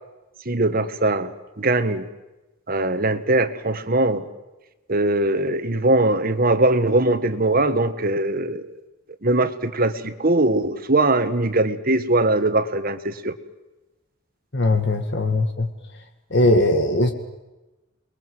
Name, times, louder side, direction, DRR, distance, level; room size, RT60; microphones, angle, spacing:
voice 1, 0.4-2.1 2.7-4.2 4.9-8.8 9.2-13.4, right 2 dB, 45° right, 10 dB, 1.7 m, -21 dB
voice 2, 14.5-15.7 16.3-17.1, left 1 dB, 60° left, 5 dB, 1.9 m, -19 dB
29.0 x 21.5 x 7.9 m, 1.1 s
head